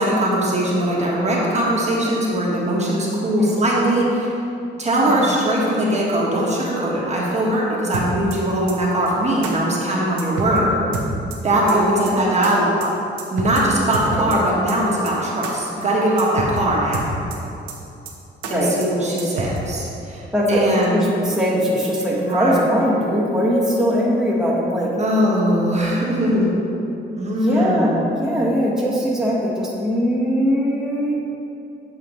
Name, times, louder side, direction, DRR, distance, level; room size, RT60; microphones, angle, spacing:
voice 1, 0.0-4.3 4.8-10.7 11.4-12.9 13.3-17.2 18.5-21.0 22.1-22.6 24.9-26.5 27.1-28.0, right 1 dB, 35° right, -5 dB, 1.2 m, -20 dB
sound 1, 7.9-8.4 8.7-8.8 9.1-9.2 9.4-9.5 9.8-9.9 10.2-10.6 10.9-11.4 11.7-11.8 12.1-12.2 12.4-12.5 12.8-12.9 13.2-13.6 13.9-14.4 14.7-14.8 15.1-15.2 15.4-15.5 15.8-15.9 16.2-16.6 16.9-17.4 17.7-17.8 18.1-18.2 18.4-18.5 18.8-18.9 19.2-19.6, right 4 dB, 90° right, 0.9 m, -28 dB
voice 2, 11.6-12.2 14.1-14.3 18.4-18.7 20.3-24.9 25.7-25.8 27.3-31.2, equal, 5° right, -6 dB, 1.2 m, -21 dB
7.8 x 4.9 x 3.0 m, 2.8 s
cardioid pair, 90°, 20 cm